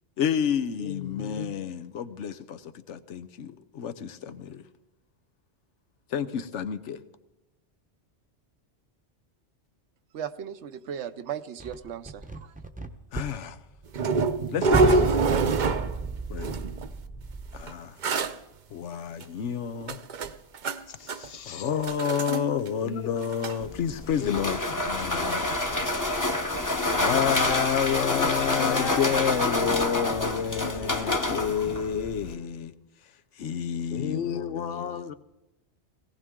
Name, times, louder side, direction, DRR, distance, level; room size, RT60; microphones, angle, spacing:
voice 1, 0.2-4.6 6.1-7.0 13.1-13.6 14.5-15.2 16.3-16.6 17.5-18.0 18.7-20.0 21.5-25.9 26.8-32.7 33.4-35.0, left 8 dB, 85° left, 1.1 m, -30 dB
voice 2, 0.8-1.5 20.9-21.7 22.3-22.5 22.8-23.5 24.2-25.6 27.0-28.0 28.5-29.0 30.6-31.4 33.9-35.1, left 8 dB, 60° left, 0.8 m, -36 dB
voice 3, 10.1-12.5, right 8 dB, 75° right, 1.0 m, -37 dB
sound 1, 11.6-12.9 13.1-14.1 14.4-14.5 14.7-17.6, right 3 dB, 10° right, 0.7 m, -32 dB
sound 2, 13.9-16.1 16.4-16.9 17.7-17.8 18.0-18.3 19.2-19.3 19.8-20.8 21.1-21.3 21.8-22.4 22.7-22.8 23.1-23.6 25.2-25.3 25.8-25.9, right 3 dB, 50° right, 0.7 m, -25 dB
sound 3, 23.6-32.3, left 2 dB, 15° left, 0.9 m, -28 dB
18.0 x 16.5 x 3.7 m
omnidirectional pair, 1.2 m